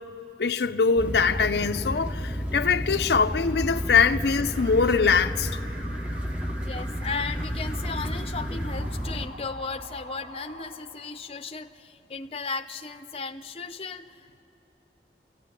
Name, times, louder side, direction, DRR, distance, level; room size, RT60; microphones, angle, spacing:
voice 1, 0.4-5.5, left 5 dB, 70° left, 0.5 m, -23 dB
sound 1, 1.0-9.3, equal, 5° right, 0.8 m, -31 dB
Alarm, 3.7-11.6, right 1 dB, 90° right, 3.3 m, -45 dB
voice 2, 6.6-14.4, left 4 dB, 35° left, 0.7 m, -35 dB
28.5 x 14.5 x 9.8 m
head